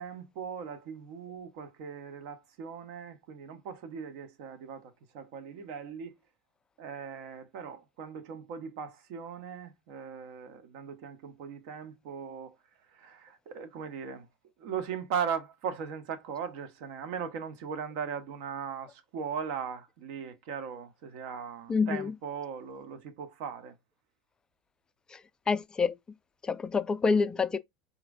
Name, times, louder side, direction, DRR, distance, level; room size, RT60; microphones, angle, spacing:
voice 1, 0.0-6.1 6.8-12.5 12.9-14.3 14.6-23.8, right 7 dB, 65° right, 0.8 m, -39 dB
voice 2, 21.7-22.1 25.1-25.2 25.5-26.0 26.4-27.6, left 4 dB, 20° left, 0.3 m, -27 dB
4.2 x 2.6 x 2.5 m
hypercardioid pair, 90°, 4 cm